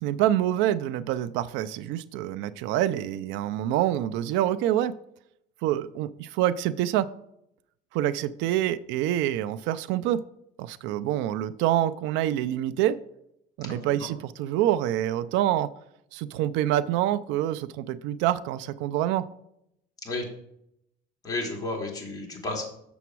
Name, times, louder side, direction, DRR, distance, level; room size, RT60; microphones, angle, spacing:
voice 1, 0.0-4.9 5.6-7.1 7.9-10.2 10.6-13.0 13.6-15.7 16.1-19.3, right 12 dB, 85° right, 15 dB, 0.5 m, -26 dB
voice 2, 13.6-14.1 20.0-20.2 21.2-22.6, left 2 dB, 20° left, -2 dB, 2.8 m, -32 dB
7.0 x 7.0 x 4.6 m, 0.76 s
cardioid pair, 130°, 19 cm